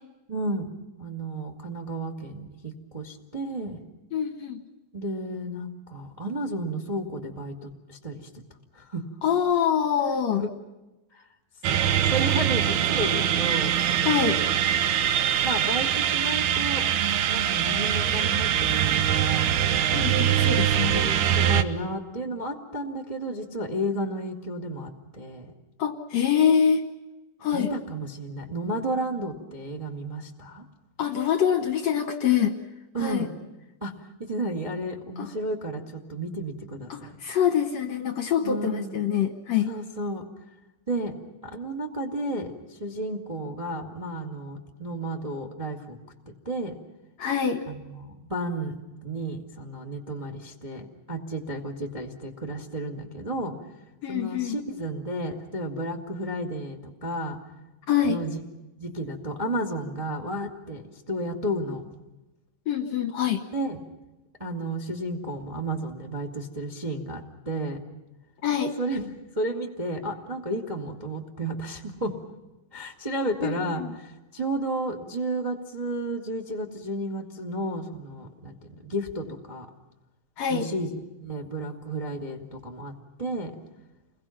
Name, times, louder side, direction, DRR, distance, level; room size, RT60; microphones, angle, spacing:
voice 1, 0.3-0.7 1.0-3.8 4.9-8.3 8.7-9.0 10.4-10.5 11.1-11.3 11.7-13.7 15.4-16.9 17.3-19.5 20.2-25.5 27.5-30.6 32.9-33.3 33.8-37.1 38.4-38.9 39.6-40.2 40.9-41.2 41.4-46.0 46.2-46.7 47.6-48.7 49.0-53.6 54.1-57.4 58.0-58.4 58.8-61.8 63.5-63.8 64.4-67.8 68.8-72.2 72.7-79.7 80.5-83.5, right 1 dB, 15° right, 3 dB, 1.2 m, -32 dB
voice 2, 4.1-4.6 9.2-10.4 14.0-14.4 19.9-21.0 25.8-26.8 27.4-27.7 31.0-32.5 33.0-33.3 35.2-35.3 36.9-39.7 47.2-47.6 54.0-54.6 57.9-58.2 62.7-63.4 68.4-68.7 73.4-73.9 80.4-80.7, left 8 dB, 65° left, 6 dB, 2.0 m, -25 dB
sound 1, 11.6-21.6, right 9 dB, 70° right, 2.3 m, -23 dB
29.5 x 22.0 x 5.9 m, 1.0 s
omnidirectional pair, 4.1 m